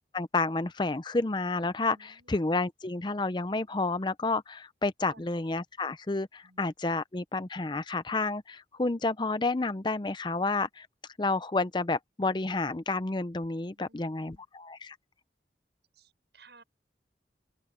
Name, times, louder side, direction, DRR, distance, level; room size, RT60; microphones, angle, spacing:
voice 1, 0.1-10.9 11.2-15.0, left 3 dB, 25° left, 0.5 m, -30 dB
voice 2, 1.9-2.5 5.0-5.3 6.4-7.0 13.7-14.5 15.9-16.6, right 3 dB, 75° right, 5.9 m, -59 dB
head